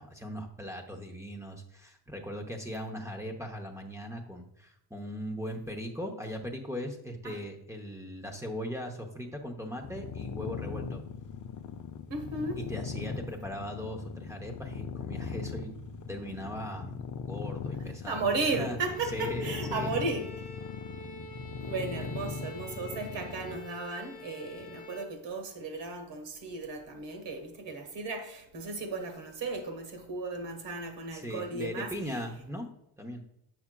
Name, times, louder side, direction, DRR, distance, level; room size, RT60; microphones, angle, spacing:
voice 1, 0.0-11.0 12.6-15.7 16.1-18.3 18.5-18.8 19.1-19.9 31.1-32.7 33.0-33.2, equal, 5° right, 0.7 m, -39 dB
sound 1, 9.8-23.6, left 6 dB, 40° left, 0.5 m, -39 dB
voice 2, 12.1-12.6 18.1-20.3 21.6-31.9, right 3 dB, 65° right, 1.4 m, -35 dB
Bowed string instrument, 18.8-25.2, left 1 dB, 20° left, 1.0 m, -46 dB
8.6 x 5.9 x 2.2 m
wide cardioid pair, 155°, 46 cm